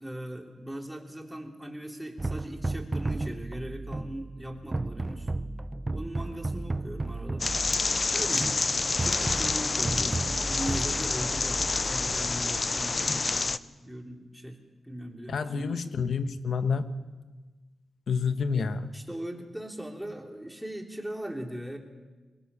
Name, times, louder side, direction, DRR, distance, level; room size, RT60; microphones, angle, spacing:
voice 1, 0.0-5.3 5.9-7.5 8.1-14.6 14.8-15.8 18.5-21.8, equal, 5° right, 2 dB, 3.3 m, -39 dB
sound 1, 2.2-12.3, right 2 dB, 25° right, 0.6 m, -34 dB
sound 2, 7.4-13.6, left 3 dB, 40° left, 0.6 m, -28 dB
voice 2, 15.3-16.9 18.1-18.9, left 5 dB, 70° left, 10 dB, 1.3 m, -28 dB
22.5 x 19.0 x 7.0 m, 1.3 s
cardioid pair, 75°, 0 cm